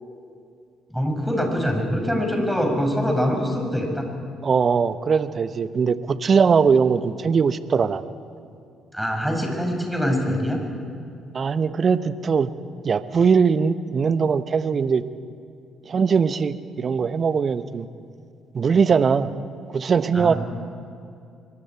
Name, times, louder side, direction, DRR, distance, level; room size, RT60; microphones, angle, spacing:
voice 1, 0.9-4.1 8.9-10.6 20.1-20.4, equal, ahead, 1 dB, 6.1 m, -24 dB
voice 2, 4.4-8.0 11.3-12.5 12.8-15.0 15.9-17.9 18.5-19.3 19.7-20.3, right 6 dB, 45° right, 14 dB, 0.9 m, -20 dB
25.0 x 23.0 x 4.7 m, 2.5 s
figure-of-eight pair, 45°, 0 cm